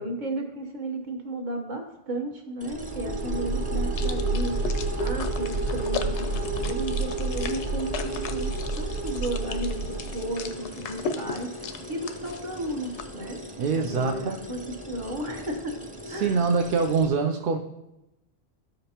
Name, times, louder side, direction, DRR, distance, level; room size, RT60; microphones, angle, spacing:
voice 1, 0.0-4.6 5.0-13.4 13.7-14.6 14.9-15.7 16.1-16.5, right 1 dB, 45° right, 2 dB, 1.2 m, -34 dB
sound 1, 2.6-17.1, equal, 10° right, 0.6 m, -41 dB
sound 2, 2.7-10.5, right 2 dB, 85° right, 1.7 m, -29 dB
sound 3, 4.0-13.0, left 6 dB, 85° left, 0.9 m, -38 dB
voice 2, 13.6-14.4 16.1-17.6, right 5 dB, 60° right, 2 dB, 0.6 m, -24 dB
12.5 x 5.1 x 2.9 m, 0.91 s
omnidirectional pair, 1.1 m